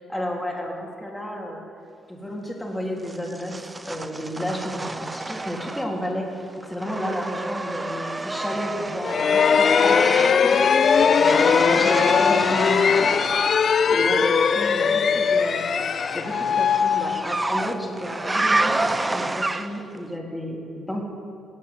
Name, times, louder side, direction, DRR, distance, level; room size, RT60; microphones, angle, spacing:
voice 1, 0.0-1.6 2.1-3.6 3.9-6.3 6.7-10.7 11.0-15.7 16.1-21.1, equal, 5° left, -2 dB, 3.6 m, -31 dB
sound 1, 3.1-6.1 6.4-13.7 15.2-20.0, right 2 dB, 20° right, 0.7 m, -29 dB
sound 2, 9.0-17.7, left 6 dB, 50° left, 0.7 m, -20 dB
17.0 x 9.6 x 7.8 m, 2.5 s
cardioid pair, 90°, 0 cm